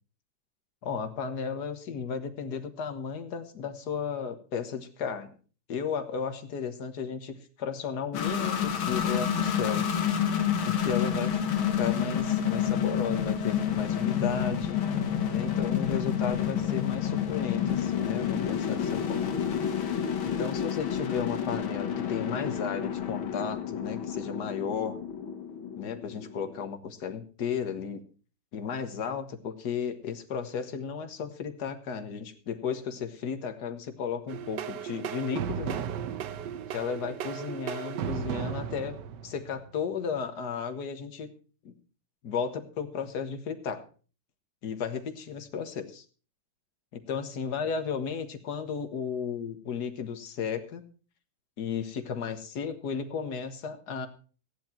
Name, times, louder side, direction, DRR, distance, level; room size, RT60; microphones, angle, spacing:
voice 1, 0.8-5.3 5.7-9.9 10.7-11.5 11.8-14.8 15.3-19.3 20.4-25.0 25.8-28.0 28.5-35.8 36.7-39.0 39.2-41.3 41.6-41.7 42.2-43.8 44.6-46.0 47.1-50.8 51.6-54.1, left 6 dB, 55° left, 8 dB, 1.8 m, -34 dB
sound 1, 8.1-26.6, left 8 dB, 85° left, 2.2 m, -29 dB
sound 2, 34.3-39.7, right 9 dB, 65° right, 1.3 m, -35 dB
15.0 x 10.5 x 4.4 m, 0.38 s
omnidirectional pair, 2.2 m